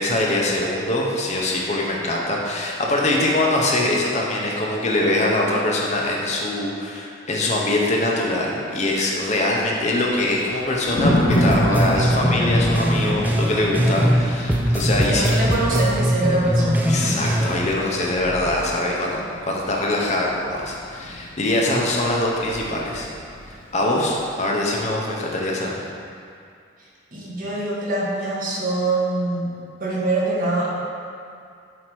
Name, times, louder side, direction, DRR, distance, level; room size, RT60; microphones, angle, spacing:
voice 1, 0.0-15.3 16.9-23.1 23.7-25.9, left 1 dB, 35° left, -2 dB, 0.7 m, -23 dB
Thunder, 9.1-23.7 24.0-24.2, equal, 85° left, 0.7 m, -29 dB
sound 1, 11.3-14.2 14.5-17.7, equal, 10° right, 0.3 m, -21 dB
voice 2, 12.0-12.4 15.1-16.9 27.1-29.5 29.8-30.7, right 2 dB, 45° right, -6 dB, 1.1 m, -24 dB
7.4 x 2.8 x 4.6 m, 2.4 s
head